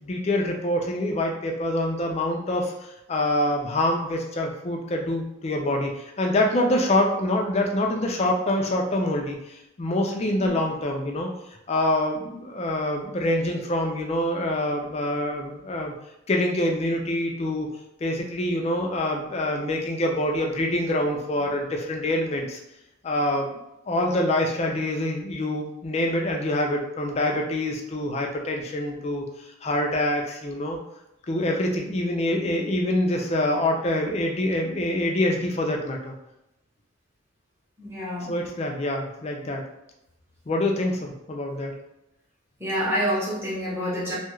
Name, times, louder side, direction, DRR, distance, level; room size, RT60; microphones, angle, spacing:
voice 1, 0.0-11.3 11.7-15.9 16.3-17.7 18.0-22.6 23.0-23.5 23.9-29.3 29.6-30.8 31.3-36.1 38.3-39.6 40.5-41.8, left 1 dB, 30° left, 1 dB, 0.4 m, -25 dB
voice 2, 37.8-38.3 42.6-44.1, equal, 10° right, -7 dB, 0.8 m, -27 dB
2.7 x 2.3 x 3.0 m, 0.85 s
head